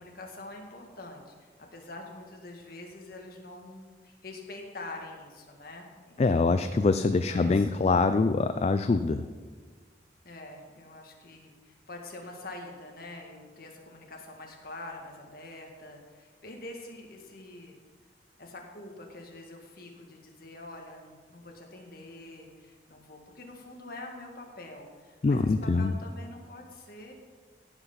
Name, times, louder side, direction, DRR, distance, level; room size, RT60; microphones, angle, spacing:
voice 1, 0.0-6.7 7.2-7.7 10.2-17.8 18.4-27.1, left 2 dB, 55° left, 1 dB, 1.8 m, -45 dB
voice 2, 6.2-9.3 25.2-25.9, left 3 dB, 35° left, 10 dB, 0.3 m, -24 dB
16.0 x 5.7 x 5.7 m, 1.5 s
head